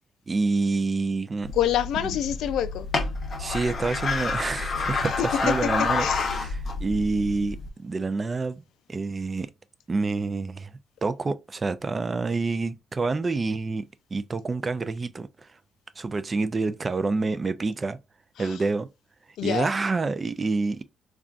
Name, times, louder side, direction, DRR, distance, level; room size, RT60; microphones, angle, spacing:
voice 1, 0.3-1.5 3.4-8.6 8.9-9.5 9.9-10.7 11.0-13.8 14.1-15.5 16.0-18.0 18.4-18.9 19.4-20.8, right 3 dB, 30° right, 0.4 m, -27 dB
sound 1, 1.4-7.7, left 4 dB, 45° left, 0.8 m, -29 dB
voice 2, 1.5-2.9 6.0-6.3 18.4-18.6 19.4-19.7, left 11 dB, 80° left, 0.3 m, -26 dB
3.7 x 2.3 x 2.4 m
cardioid pair, 90°, 0 cm